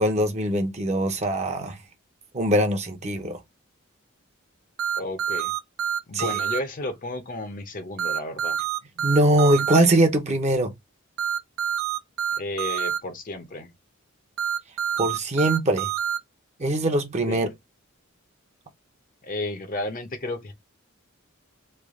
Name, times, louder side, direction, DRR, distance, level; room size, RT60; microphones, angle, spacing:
voice 1, 0.0-1.8 2.3-3.4 6.1-6.3 9.0-10.7 15.0-15.9 16.6-17.5, right 1 dB, 35° right, 0.7 m, -22 dB
sound 1, 4.8-6.6 8.0-9.8 11.2-13.0 14.4-16.2, right 9 dB, 75° right, 0.7 m, -27 dB
voice 2, 4.9-5.5 6.1-8.6 12.4-13.7 17.3-17.5 19.2-20.5, left 2 dB, 40° left, 0.7 m, -32 dB
3.3 x 2.4 x 3.5 m
head